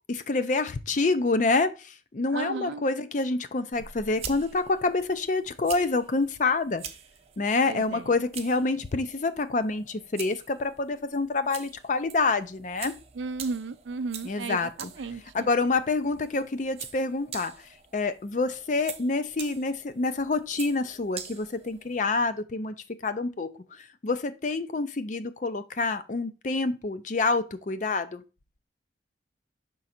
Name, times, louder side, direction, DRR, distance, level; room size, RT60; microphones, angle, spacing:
voice 1, 0.1-6.8 7.4-12.9 14.2-14.9 15.3-17.7 17.9-22.7 23.0-23.5 23.8-28.2, left 3 dB, 40° left, 0.5 m, -27 dB
voice 2, 2.3-2.8 7.7-8.1 13.2-15.5, right 4 dB, 80° right, 0.4 m, -35 dB
sound 1, 3.7-22.1, right 7 dB, 35° right, 0.6 m, -45 dB
6.1 x 3.8 x 4.2 m
head